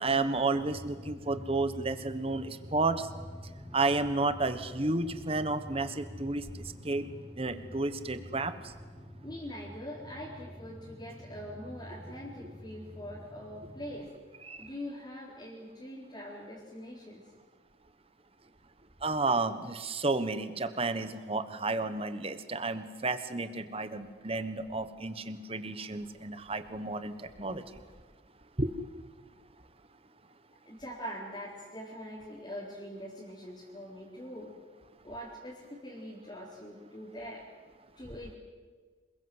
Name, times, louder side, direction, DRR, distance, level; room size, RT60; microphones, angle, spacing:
voice 1, 0.0-3.1 3.7-7.1 7.3-8.7 12.4-12.5 14.4-14.7 19.0-27.8 28.6-28.9, right 3 dB, 30° right, 11 dB, 1.3 m, -32 dB
Drum, 0.5-14.0, equal, 10° left, 4.6 m, -47 dB
voice 2, 9.2-14.1 14.6-17.2 30.6-34.5 35.0-37.4 38.0-38.3, equal, 25° left, -6 dB, 4.2 m, -43 dB
27.5 x 22.0 x 8.1 m, 1.5 s
head